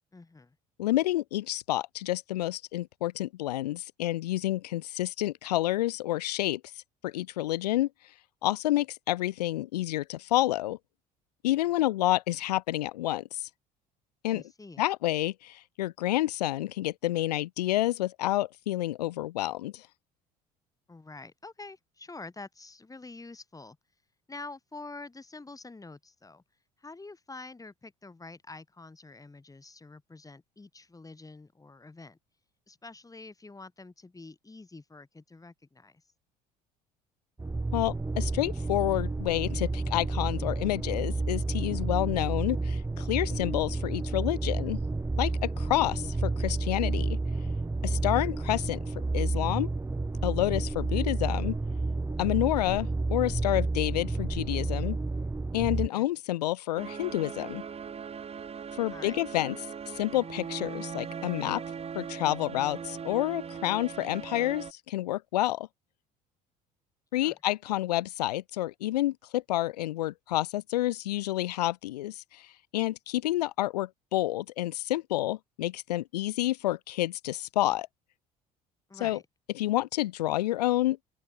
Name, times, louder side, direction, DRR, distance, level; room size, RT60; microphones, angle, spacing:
voice 1, 0.1-0.6 14.3-14.8 20.9-23.8 24.3-26.4 26.8-32.2 32.7-36.0 45.7-45.8 55.8-56.1 58.9-59.2 67.2-67.4 78.9-79.2, left 3 dB, 15° left, 3.4 m, -47 dB
voice 2, 0.8-8.1 8.4-10.8 11.4-13.5 14.2-14.4 14.8-19.9 37.7-44.8 45.2-47.2 47.8-49.7 50.2-51.5 52.2-55.0 55.5-57.6 58.7-59.5 59.9-61.6 61.9-65.7 67.1-77.9 79.0-79.2 79.6-81.0, left 15 dB, 80° left, 0.5 m, -29 dB
sound 1, 37.4-55.9, right 3 dB, 10° right, 0.9 m, -30 dB
sound 2, 56.8-64.7, right 7 dB, 30° right, 1.1 m, -39 dB
open air
hypercardioid pair, 60°, 20 cm